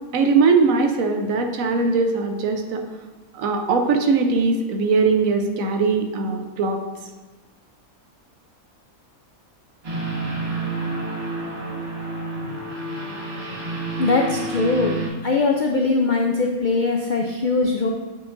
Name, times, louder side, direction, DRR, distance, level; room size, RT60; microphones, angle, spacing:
voice 1, 0.1-2.8 3.4-6.8, right 4 dB, 75° right, 5 dB, 1.1 m, -20 dB
sound 1, 9.8-15.1, right 2 dB, 45° right, 1.6 m, -29 dB
voice 2, 14.0-15.0 15.2-17.9, left 3 dB, 85° left, 1 dB, 0.4 m, -21 dB
8.4 x 4.9 x 2.5 m, 1.2 s
omnidirectional pair, 1.5 m